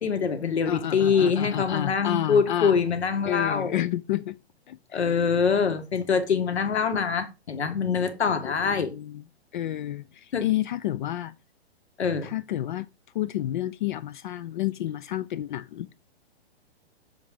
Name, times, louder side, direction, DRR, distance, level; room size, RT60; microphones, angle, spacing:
voice 1, 0.0-3.8 4.9-8.9 10.3-10.5 12.0-12.3, left 6 dB, 80° left, 1.5 m, -24 dB
voice 2, 0.7-2.8 3.3-4.4 4.7-5.0 8.4-9.2 9.5-11.3 12.2-12.9 13.1-15.9, left 13 dB, 50° left, 0.4 m, -30 dB
7.2 x 3.8 x 4.9 m
hypercardioid pair, 125°, 33 cm